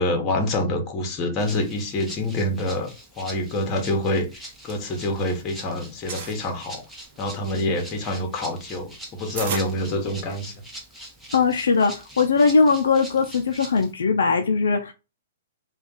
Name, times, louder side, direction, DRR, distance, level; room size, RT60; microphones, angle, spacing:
voice 1, 0.0-2.9 3.2-6.8 7.2-10.5, left 1 dB, 30° left, 0.9 m, -26 dB
Rattle (instrument), 1.4-13.9, right 1 dB, 5° right, 0.8 m, -43 dB
sound 1, 4.5-5.5 5.8-6.4 7.0-10.6, right 5 dB, 50° right, 0.8 m, -36 dB
voice 2, 11.3-14.9, left 4 dB, 80° left, 0.3 m, -20 dB
2.4 x 2.2 x 3.7 m
hypercardioid pair, 125°, 0 cm